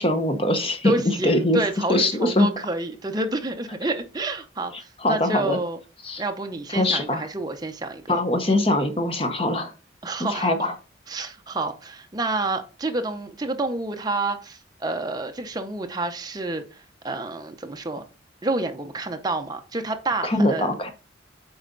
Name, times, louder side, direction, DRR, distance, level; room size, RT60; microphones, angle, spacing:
voice 1, 0.0-0.9 1.2-1.6 1.9-2.5 5.0-5.6 6.0-6.2 6.7-7.2 8.1-9.7 10.3-10.7 20.2-20.9, left 1 dB, 30° left, 7 dB, 0.9 m, -22 dB
voice 2, 0.8-5.8 6.2-8.2 10.0-10.5 11.1-18.0 18.4-20.9, right 2 dB, 20° right, 5 dB, 0.7 m, -29 dB
7.9 x 4.2 x 3.9 m, 0.33 s
head